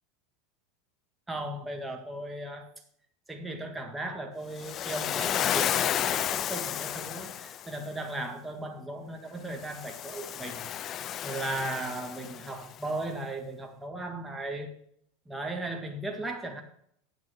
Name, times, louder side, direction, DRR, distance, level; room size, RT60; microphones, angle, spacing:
voice 1, 1.3-2.7 3.3-14.8 15.3-16.6, right 2 dB, 10° right, 2 dB, 1.8 m, -37 dB
Waves surf, 4.6-7.8 9.6-12.7, left 10 dB, 40° left, 0.4 m, -32 dB
8.7 x 6.0 x 6.5 m, 0.67 s
supercardioid pair, 110°, 0 cm